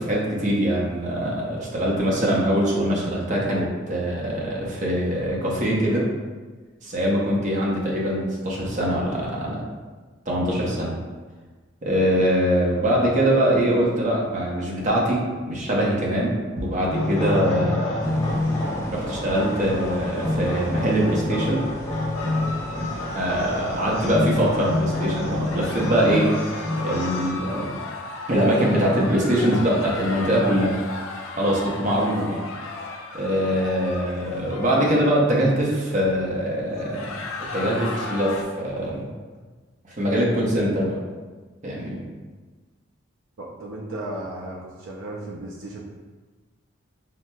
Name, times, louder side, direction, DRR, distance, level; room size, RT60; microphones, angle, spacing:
voice 1, 0.0-6.0 6.8-9.6 10.3-11.0 11.8-18.3 18.9-21.6 23.1-26.6 26.8-27.8 28.3-30.7 31.4-32.4 33.1-37.2 37.5-39.1 39.8-41.0 41.6-42.0, equal, 40° right, -4 dB, 0.7 m, -23 dB
sound 1, 16.9-27.3, left 1 dB, 30° left, 1.0 m, -27 dB
sound 2, 18.0-25.9, equal, 15° left, 0.4 m, -36 dB
sound 3, 22.2-23.7 25.5-35.1 36.7-38.4, left 3 dB, 80° left, 0.4 m, -35 dB
voice 2, 43.4-45.8, right 1 dB, 70° right, -2 dB, 0.4 m, -35 dB
5.8 x 2.1 x 2.2 m, 1.3 s
head